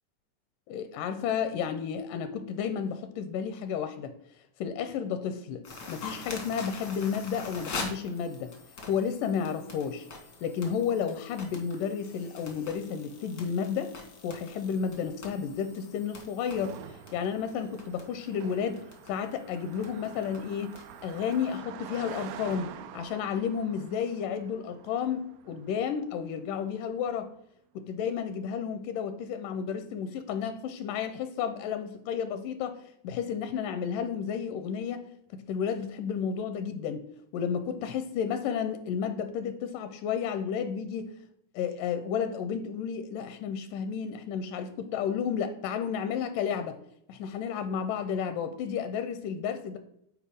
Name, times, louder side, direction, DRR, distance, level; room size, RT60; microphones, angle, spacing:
voice 1, 0.7-4.1 4.6-8.5 8.9-10.1 10.4-13.9 14.2-16.8 17.1-18.8 19.1-27.3 27.8-32.8 33.0-35.1 35.3-37.1 37.3-41.1 41.6-46.8 47.1-49.8, left 7 dB, 85° left, 9 dB, 2.1 m, -32 dB
sound 1, 5.6-21.6, left 3 dB, 65° left, 0.9 m, -45 dB
Car passing by, 16.5-26.1, right 10 dB, 80° right, 1.9 m, -47 dB
9.7 x 4.5 x 3.4 m, 0.72 s
omnidirectional pair, 3.8 m